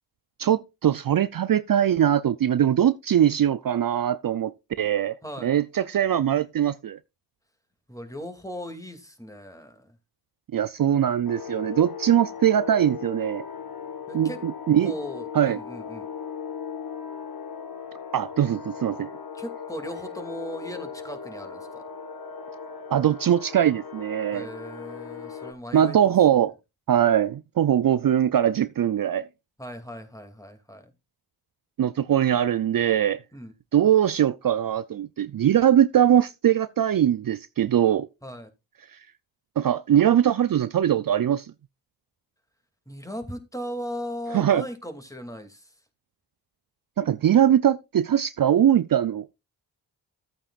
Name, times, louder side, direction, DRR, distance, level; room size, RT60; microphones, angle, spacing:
voice 1, 0.4-4.5 4.8-5.2 5.4-7.0 10.5-13.4 14.1-14.9 15.3-15.6 18.1-19.1 22.9-24.5 25.7-26.5 26.9-29.3 31.8-33.2 33.7-38.1 39.6-41.5 44.3-44.6 47.0-49.3, right 10 dB, 55° right, 0.5 m, -21 dB
voice 2, 7.9-9.9 14.1-14.4 14.8-16.1 19.3-21.8 24.3-26.4 29.6-30.9 33.3-33.5 38.2-38.5 42.9-45.7, equal, 10° left, 2.4 m, -38 dB
sound 1, 11.3-25.5, left 6 dB, 55° left, 1.7 m, -38 dB
14.0 x 8.8 x 2.4 m
cardioid pair, 40°, 42 cm